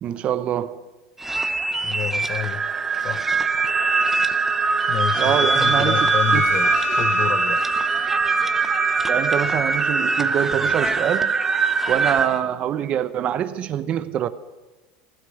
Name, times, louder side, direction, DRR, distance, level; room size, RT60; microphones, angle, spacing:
voice 1, 0.0-0.8 5.2-6.1 6.3-6.4 9.1-11.3 11.9-14.3, right 10 dB, 40° right, 0.8 m, -24 dB
sound 1, 1.2-12.4, right 2 dB, 10° right, 0.9 m, -28 dB
voice 2, 1.8-2.6 3.0-3.3 4.9-7.6, left 11 dB, 45° left, 0.8 m, -29 dB
sound 2, 2.3-12.3, right 5 dB, 25° right, 1.2 m, -22 dB
sound 3, 5.1-9.0, left 6 dB, 70° left, 2.6 m, -33 dB
15.5 x 13.0 x 6.4 m
supercardioid pair, 115°, 3 cm